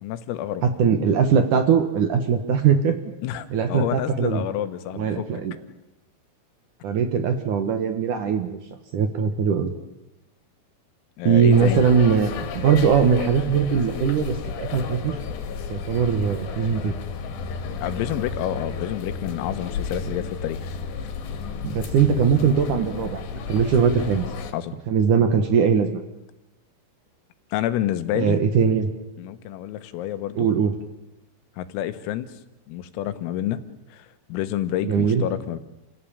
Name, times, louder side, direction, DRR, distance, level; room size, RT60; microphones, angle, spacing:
voice 1, 0.0-0.6 3.2-5.3 11.2-11.8 17.8-20.8 24.5-24.8 27.5-28.4 29.2-30.5 31.6-32.3 32.7-33.6 33.9-35.6, left 12 dB, 85° left, 10 dB, 4.0 m, -28 dB
voice 2, 0.8-3.0 3.5-4.4 4.9-5.6 6.8-8.6 8.9-9.7 11.2-15.2 15.7-16.9 20.1-20.2 21.6-23.2 23.5-24.2 24.9-26.0 28.1-28.9 30.4-30.7 34.8-35.2, right 6 dB, 75° right, 8 dB, 1.9 m, -20 dB
sound 1, 11.5-24.5, left 5 dB, 65° left, 3.8 m, -32 dB
29.0 x 17.0 x 8.8 m, 0.97 s
omnidirectional pair, 6.0 m